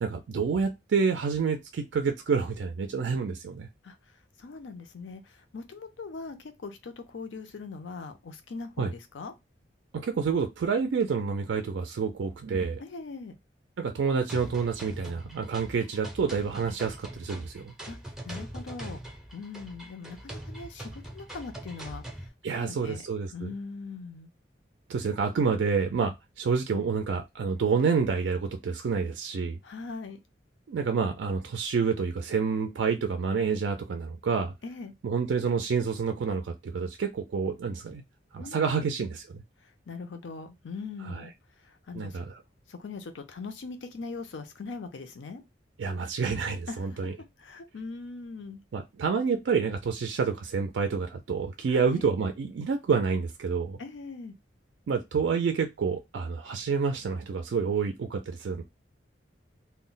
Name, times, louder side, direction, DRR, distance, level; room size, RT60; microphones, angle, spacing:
voice 1, 0.0-3.7 8.8-8.9 9.9-12.8 13.8-17.7 22.4-23.5 24.9-29.6 30.7-34.5 35.0-38.0 38.3-39.4 41.0-41.3 41.9-42.4 45.8-47.1 48.7-53.8 54.9-58.6, right 5 dB, 70° right, 0.4 m, -28 dB
voice 2, 4.4-9.3 12.8-13.4 17.9-18.0 18.2-19.0 19.3-22.0 22.6-23.0 23.3-24.3 29.6-30.2 34.6-34.9 38.4-38.9 39.9-41.3 41.9-42.2 42.7-45.4 46.7-47.1 47.4-48.6 51.7-52.1 53.8-54.3, left 4 dB, 70° left, 0.5 m, -40 dB
sound 1, 14.3-22.3, right 1 dB, 5° right, 0.5 m, -42 dB
2.2 x 2.0 x 3.8 m
head